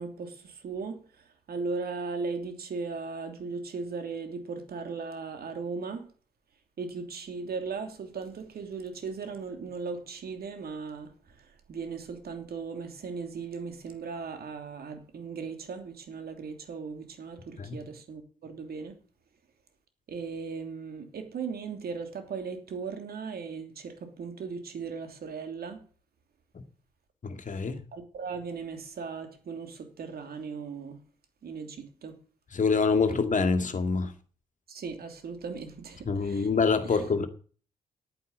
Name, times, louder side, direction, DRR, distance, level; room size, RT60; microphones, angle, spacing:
voice 1, 0.0-6.1 6.8-11.1 11.4-19.0 20.1-25.8 27.9-31.0 31.4-32.2 34.7-36.5 36.9-37.0, right 5 dB, 60° right, 2.9 m, -37 dB
voice 2, 27.2-27.8 32.5-34.1 36.1-37.3, left 4 dB, 45° left, 2.2 m, -26 dB
10.5 x 9.4 x 7.5 m
hypercardioid pair, 40°, 18 cm